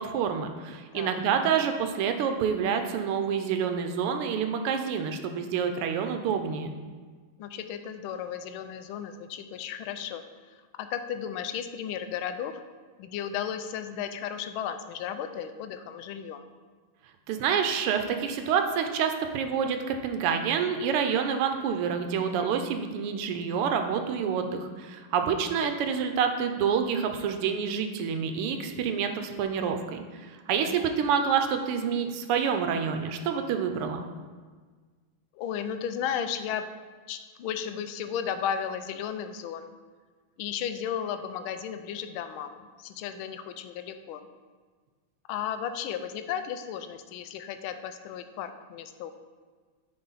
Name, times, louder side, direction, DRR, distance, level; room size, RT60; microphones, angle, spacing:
voice 1, 0.0-6.7 17.3-34.0, right 7 dB, 85° right, 6 dB, 1.6 m, -28 dB
voice 2, 7.4-10.2 10.8-12.6 13.0-16.4 22.4-22.5 30.6-30.8 35.3-36.7 37.1-39.7 40.4-44.2 45.3-49.1, left 8 dB, 75° left, 9 dB, 1.3 m, -34 dB
9.5 x 4.4 x 4.0 m, 1.5 s
omnidirectional pair, 2.4 m